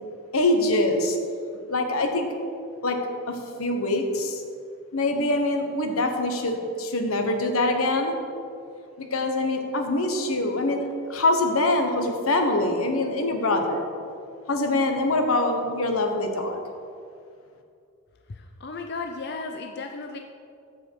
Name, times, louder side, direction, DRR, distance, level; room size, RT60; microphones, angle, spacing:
voice 1, 0.3-1.2 1.7-2.3 2.8-3.0 3.3-4.4 4.9-8.2 9.0-13.9 14.5-16.6, left 2 dB, 90° left, 4 dB, 1.2 m, -24 dB
voice 2, 18.3-20.2, left 3 dB, 50° left, 4 dB, 0.5 m, -35 dB
15.0 x 5.4 x 4.7 m, 2.4 s
head